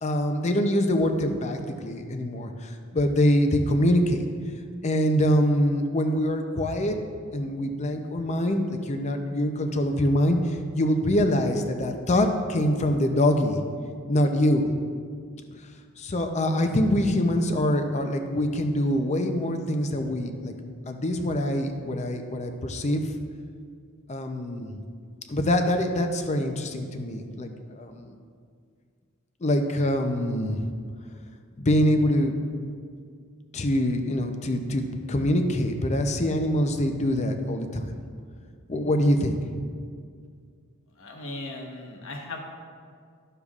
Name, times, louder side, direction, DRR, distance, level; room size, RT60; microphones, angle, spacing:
voice 1, 0.0-4.3 4.8-7.0 7.3-13.6 14.1-14.7 16.0-23.1 24.1-24.8 25.3-28.2 29.4-30.6 31.6-32.3 33.5-37.9 38.7-39.4, left 1 dB, 30° left, 6 dB, 0.5 m, -24 dB
voice 2, 41.0-42.6, left 2 dB, 60° left, 1 dB, 1.1 m, -37 dB
11.5 x 6.7 x 2.4 m, 2.1 s
head